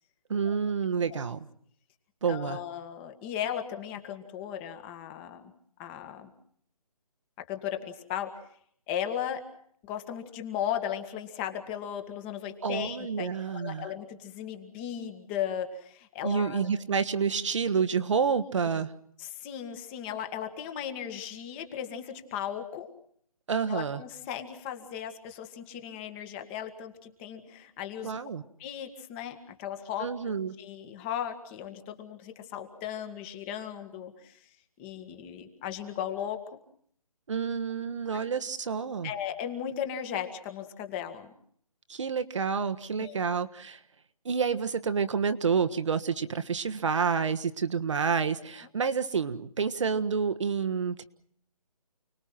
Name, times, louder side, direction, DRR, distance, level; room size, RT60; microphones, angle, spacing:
voice 1, 0.3-1.5 2.2-2.6 12.6-13.9 16.2-18.9 23.5-24.0 28.0-28.4 30.0-30.6 37.3-39.1 41.9-43.8 44.2-51.0, right 6 dB, 50° right, 11 dB, 1.5 m, -29 dB
voice 2, 2.3-5.5 5.8-6.3 7.4-8.3 8.9-9.4 9.9-16.7 19.2-22.9 23.7-28.2 28.6-30.1 30.6-34.4 34.8-36.6 38.7-41.3 43.0-43.2, left 9 dB, 15° left, 7 dB, 2.0 m, -36 dB
29.5 x 21.0 x 6.0 m, 0.63 s
hypercardioid pair, 160°, 19 cm